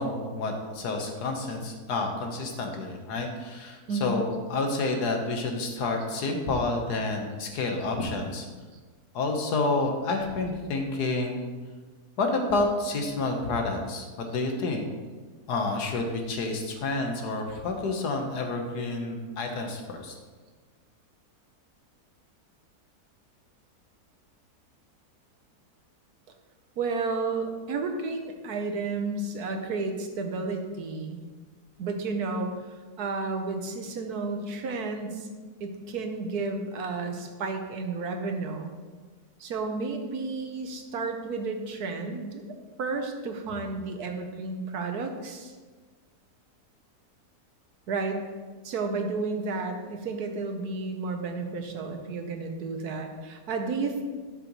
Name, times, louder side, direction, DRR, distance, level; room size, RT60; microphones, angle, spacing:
voice 1, 0.0-8.5 9.1-11.4 12.2-14.8 15.5-20.1, left 3 dB, 90° left, 3 dB, 1.7 m, -29 dB
voice 2, 26.8-31.2 31.8-32.5 33.0-35.3 35.6-38.7 39.4-45.5 47.9-48.2 48.6-54.0, right 3 dB, 75° right, 5 dB, 1.5 m, -32 dB
12.0 x 6.7 x 3.1 m, 1.4 s
omnidirectional pair, 1.7 m